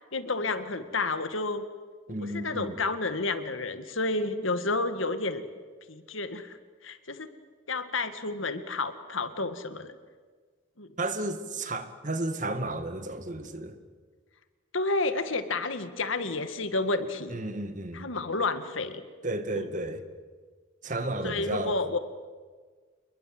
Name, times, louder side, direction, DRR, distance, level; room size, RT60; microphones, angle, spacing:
voice 1, 0.0-1.6 2.1-5.4 5.9-6.6 6.8-7.3 7.7-9.9 10.8-10.9 14.7-17.4 17.9-19.0 19.5-19.7 21.2-22.0, left 3 dB, 75° left, 10 dB, 1.9 m, -30 dB
voice 2, 2.1-2.8 11.0-13.8 17.3-18.1 19.2-20.0 20.8-22.0, right 2 dB, 40° right, 9 dB, 1.8 m, -33 dB
28.5 x 22.0 x 7.8 m, 1.5 s
head